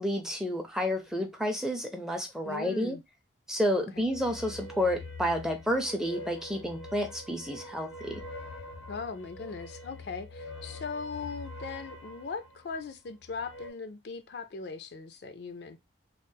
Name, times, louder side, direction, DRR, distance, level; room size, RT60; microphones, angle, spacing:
voice 1, 0.0-3.0 3.5-8.2, equal, 5° right, 0.5 m, -30 dB
voice 2, 2.4-3.0 3.9-4.0 8.9-15.8, left 4 dB, 60° left, 0.4 m, -39 dB
sound 1, 4.0-13.7, left 2 dB, 85° left, 0.8 m, -45 dB
3.1 x 2.0 x 3.3 m
head